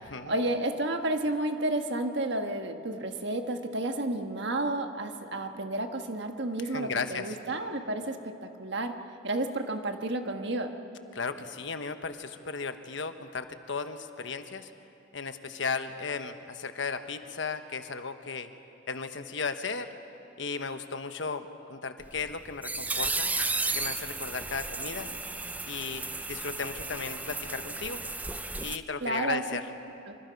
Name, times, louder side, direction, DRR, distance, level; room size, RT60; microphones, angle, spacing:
voice 1, 0.3-9.0 9.2-10.7 29.0-29.4 30.1-30.2, right 2 dB, 60° right, 5 dB, 1.5 m, -31 dB
voice 2, 6.6-7.3 11.1-14.7 15.1-18.5 18.9-19.9 20.4-23.3 23.7-25.1 25.7-28.0 28.6-29.6, left 4 dB, 65° left, 8 dB, 1.1 m, -35 dB
sound 1, 22.0-28.8, right 3 dB, 10° right, 0.5 m, -34 dB
26.5 x 25.0 x 5.3 m, 2.8 s
head